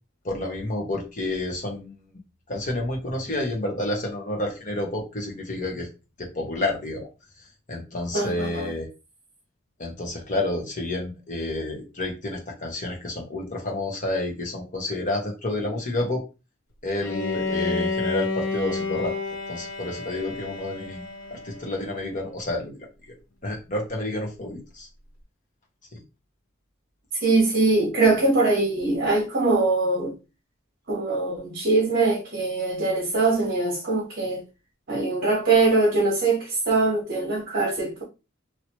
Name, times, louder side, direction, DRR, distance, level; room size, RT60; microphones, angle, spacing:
voice 1, 0.2-1.9 2.5-5.9 6.2-7.1 7.7-8.9 9.8-16.2 16.8-19.1 19.5-21.0 21.3-22.7 23.4-24.9 25.9-26.0, left 2 dB, 40° left, 1.2 m, -29 dB
voice 2, 8.1-8.7 27.2-30.1 30.9-34.4 34.9-38.0, right 3 dB, 50° right, 1.1 m, -22 dB
Bowed string instrument, 17.0-22.0, left 3 dB, 75° left, 0.8 m, -30 dB
3.0 x 2.9 x 3.0 m
head